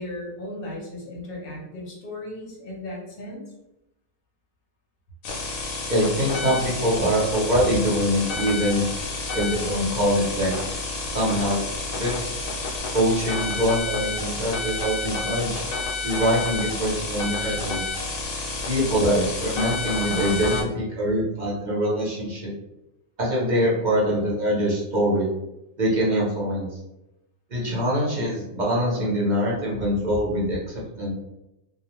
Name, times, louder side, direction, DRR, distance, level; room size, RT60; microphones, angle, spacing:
voice 1, 0.0-3.4, left 1 dB, 50° left, -3 dB, 0.8 m, -36 dB
sound 1, 5.2-20.6, left 3 dB, 75° left, 1.0 m, -30 dB
voice 2, 5.9-8.8 9.3-10.6 11.1-12.3 12.9-15.6 16.0-17.8 18.6-22.5 23.2-25.3 25.8-26.7 27.5-31.1, equal, 45° right, -5 dB, 0.6 m, -24 dB
2.4 x 2.1 x 2.9 m, 0.91 s
omnidirectional pair, 1.5 m